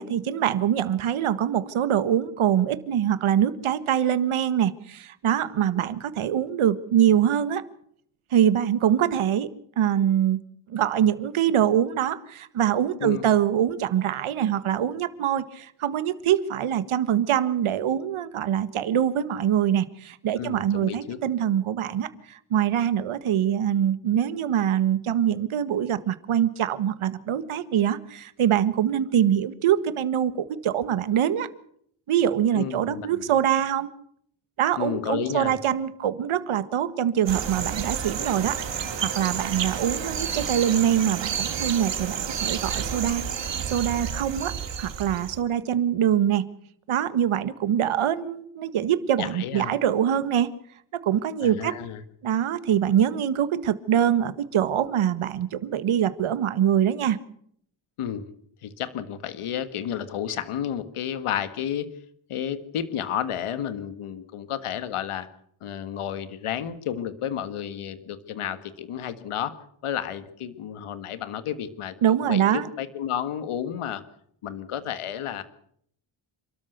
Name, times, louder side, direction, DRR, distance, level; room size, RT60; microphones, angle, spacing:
voice 1, 0.0-7.6 8.3-9.5 9.8-10.4 10.7-31.5 32.1-33.9 34.6-43.2 43.7-44.5 44.8-46.4 46.9-50.5 51.0-51.7 52.2-57.2 72.0-72.7, right 10 dB, 75° right, 14 dB, 1.7 m, -24 dB
voice 2, 20.4-21.2 32.5-33.2 34.8-35.5 49.2-49.7 51.4-52.0 58.0-58.2 58.6-61.9 62.3-65.3 65.6-69.5 69.8-74.0 74.4-75.4, left 9 dB, 85° left, 12 dB, 1.8 m, -31 dB
sound 1, 37.3-45.4, right 7 dB, 60° right, 2.9 m, -30 dB
28.5 x 13.0 x 8.0 m, 0.66 s
cardioid pair, 110°, 49 cm